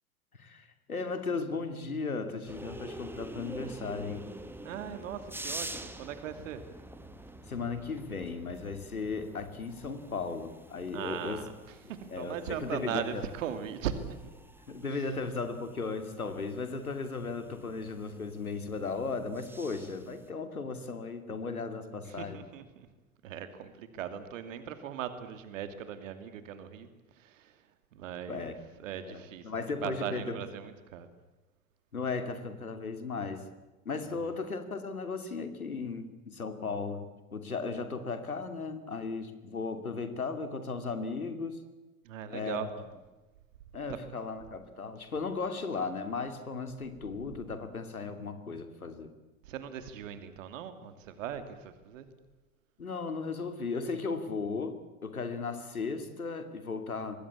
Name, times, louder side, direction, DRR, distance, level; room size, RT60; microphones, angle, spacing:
voice 1, 0.4-4.3 7.5-11.4 12.1-13.2 14.7-22.4 28.3-28.5 29.0-30.4 31.9-33.5 33.8-41.6 42.3-42.7 43.7-49.1 52.8-57.2, left 4 dB, 85° left, 9 dB, 2.8 m, -36 dB
sound 1, 2.5-20.3, right 1 dB, 5° right, 2.1 m, -47 dB
voice 2, 4.6-6.6 10.9-14.0 14.2-14.3 14.9-15.1 22.1-22.9 23.2-28.5 28.8-31.1 34.2-34.3 42.0-42.7 49.4-52.1, right 9 dB, 65° right, 10 dB, 2.7 m, -39 dB
25.5 x 20.5 x 8.4 m, 1.2 s
figure-of-eight pair, 80°, 42 cm